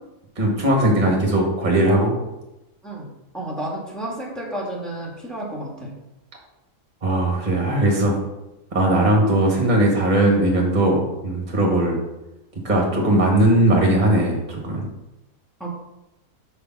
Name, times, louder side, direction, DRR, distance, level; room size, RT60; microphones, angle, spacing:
voice 1, 0.4-2.1 7.0-8.2 8.7-12.0 12.6-14.9, right 1 dB, 30° right, 0 dB, 1.7 m, -19 dB
voice 2, 3.3-5.9 15.6-15.7, right 1 dB, ahead, -2 dB, 1.7 m, -31 dB
6.7 x 4.7 x 6.0 m, 0.95 s
omnidirectional pair, 1.6 m